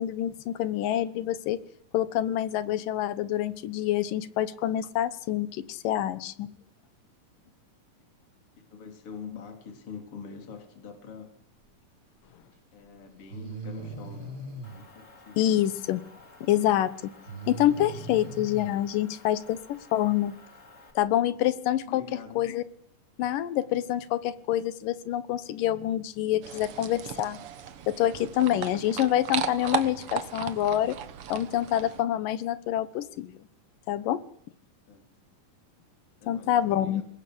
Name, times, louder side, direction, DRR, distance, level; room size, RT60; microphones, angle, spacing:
voice 1, 0.0-1.6 1.9-6.5 15.4-16.0 16.5-17.1 17.5-20.4 21.0-22.0 22.4-22.6 23.2-27.4 27.9-31.0 31.3-33.4 33.9-34.2 36.3-37.0, left 12 dB, 75° left, 2.7 m, -27 dB
voice 2, 8.7-11.4 12.7-14.4 14.7-15.5 21.1-21.4 21.8-22.5 34.9-35.1 36.2-37.0, left 6 dB, 40° left, 4.1 m, -44 dB
Breathing, 12.4-12.5 13.3-14.8 17.3-18.7, right 2 dB, 25° right, 5.2 m, -39 dB
Motor vehicle (road) / Engine, 14.6-20.9, left 3 dB, 20° left, 3.2 m, -53 dB
sound 1, 26.4-32.0, right 8 dB, 60° right, 1.6 m, -36 dB
25.5 x 20.5 x 8.0 m
omnidirectional pair, 4.0 m